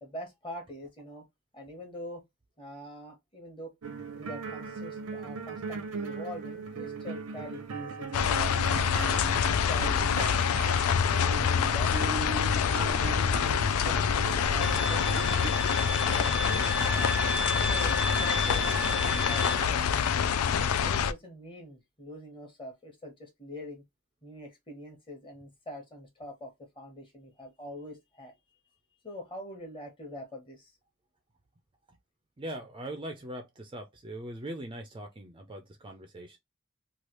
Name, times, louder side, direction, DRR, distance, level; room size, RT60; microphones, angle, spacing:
voice 1, 0.0-1.3 1.5-2.2 2.6-3.7 4.1-9.0 9.7-10.4 11.2-13.3 13.6-15.0 15.3-17.1 17.7-19.8 20.7-23.8 24.2-28.3 29.0-30.7, equal, 25° left, 1.1 m, -44 dB
sound 1, 3.8-15.5, right 4 dB, 90° right, 0.6 m, -39 dB
sound 2, 8.1-21.1, left 7 dB, 85° left, 0.4 m, -26 dB
Bowed string instrument, 14.6-19.6, left 2 dB, 60° left, 1.1 m, -33 dB
voice 2, 32.4-36.4, right 1 dB, 25° right, 0.4 m, -41 dB
3.2 x 2.4 x 3.0 m
head